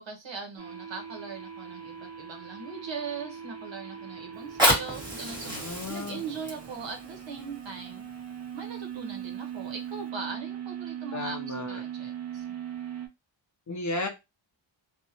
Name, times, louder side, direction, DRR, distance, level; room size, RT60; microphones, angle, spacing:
voice 1, 0.0-8.1 8.5-12.4, right 5 dB, 65° right, 3 dB, 0.9 m, -40 dB
sound 1, 0.6-13.1, right 9 dB, 35° right, 0.4 m, -40 dB
Fire, 4.3-9.3 9.9-10.0, equal, 10° right, 1.4 m, -30 dB
voice 2, 5.5-6.2 11.1-11.8 13.7-14.1, left 2 dB, 40° left, 4 dB, 0.5 m, -34 dB
2.6 x 2.0 x 2.7 m, 0.23 s
wide cardioid pair, 150°, 48 cm